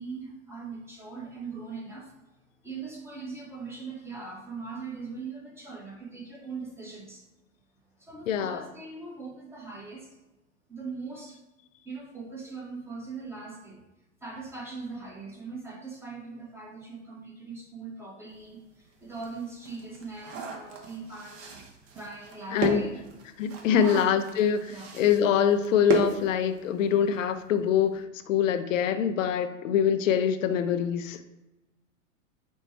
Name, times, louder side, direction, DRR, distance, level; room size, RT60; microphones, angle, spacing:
voice 1, 0.0-2.1 2.6-7.2 8.0-10.2 10.7-11.4 11.8-13.8 14.2-21.6 21.9-23.0 23.7-24.2 24.7-24.9, right 4 dB, 5° right, -2 dB, 1.0 m, -40 dB
voice 2, 8.3-8.6 22.5-22.8 23.4-31.2, left 8 dB, 75° left, 10 dB, 0.5 m, -24 dB
sound 1, 18.4-18.5 18.9-27.0 27.3-27.4 27.7-27.9, right 5 dB, 35° right, 0.9 m, -35 dB
5.2 x 2.2 x 4.4 m, 1.0 s
hypercardioid pair, 110°, 39 cm